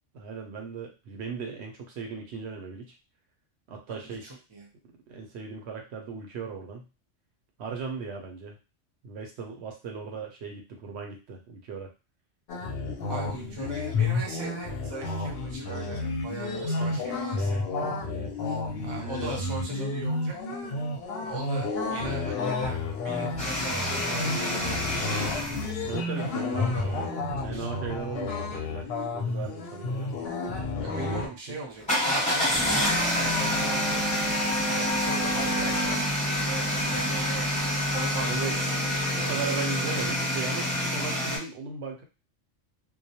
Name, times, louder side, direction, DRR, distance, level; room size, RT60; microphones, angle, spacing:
voice 1, 0.1-2.9 3.7-4.4 5.1-6.8 7.6-8.6 9.0-11.9 16.5-16.9 18.1-18.3 25.8-27.0 27.4-30.1 30.8-31.6 38.2-38.6 39.1-42.0, right 5 dB, 70° right, 2 dB, 0.8 m, -37 dB
voice 2, 3.9-4.7 13.1-17.7 18.4-20.3 20.6-20.8 21.2-25.2 26.2-27.1 27.4-27.7 30.8-32.7 33.0-34.1 34.6-37.5 37.9-38.8 39.2-39.4, right 2 dB, 30° right, -1 dB, 0.5 m, -39 dB
ahh eee ohh, 12.5-31.3, left 3 dB, 65° left, 0.7 m, -31 dB
sound 1, 23.4-25.7 31.8-41.4, equal, 5° left, 0.8 m, -27 dB
2.3 x 2.0 x 2.7 m, 0.29 s
omnidirectional pair, 1.2 m